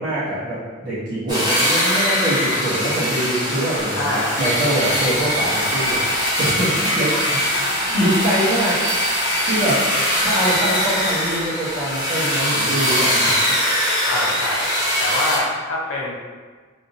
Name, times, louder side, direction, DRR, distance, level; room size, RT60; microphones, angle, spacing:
voice 1, 0.0-6.0 6.4-7.1 7.9-9.2 9.5-9.8 10.2-13.3, right 1 dB, 50° right, -13 dB, 1.0 m, -24 dB
sound 1, 1.3-15.4, equal, 20° right, 0.9 m, -21 dB
voice 2, 3.9-4.6 7.1-7.4 9.9-10.3 14.0-16.1, left 1 dB, 70° left, -3 dB, 0.7 m, -26 dB
3.5 x 2.7 x 2.7 m, 1.5 s
head